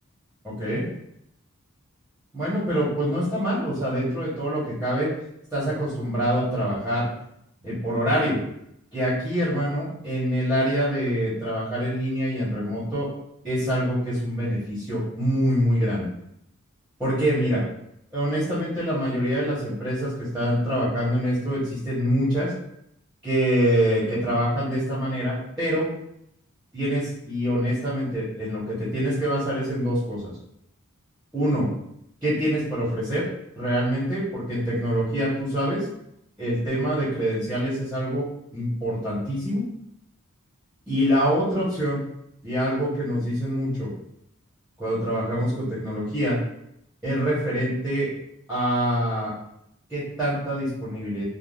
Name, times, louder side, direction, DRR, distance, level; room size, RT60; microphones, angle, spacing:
voice 1, 0.4-0.8 2.3-5.1 5.5-7.1 7.6-8.4 8.9-13.1 13.4-16.1 17.0-17.6 18.1-22.5 23.2-25.9 26.7-30.3 31.3-31.7 32.2-33.2 33.6-35.8 36.4-38.2 38.5-39.6 40.9-42.0 42.4-43.9 44.8-46.4 47.0-48.1 48.5-49.3 49.9-51.2, equal, 5° right, -11 dB, 1.1 m, -25 dB
3.5 x 2.3 x 2.5 m, 0.76 s
head